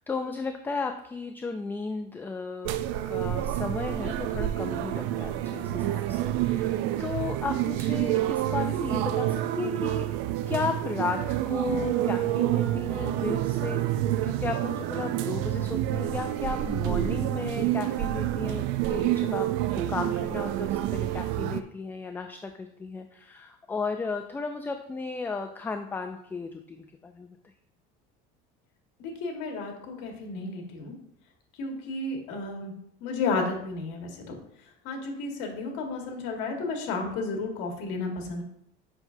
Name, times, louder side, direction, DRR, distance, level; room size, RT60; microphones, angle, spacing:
voice 1, 0.0-2.7 3.1-10.1 10.5-27.3, left 4 dB, 10° left, 7 dB, 0.3 m, -34 dB
sound 1, 2.6-21.6, right 13 dB, 80° right, 0.5 m, -28 dB
voice 2, 29.0-30.9 31.6-32.7 33.0-34.4 34.8-38.4, left 3 dB, 75° left, 2 dB, 1.7 m, -32 dB
7.8 x 5.8 x 2.7 m, 0.72 s
cardioid pair, 135°, 19 cm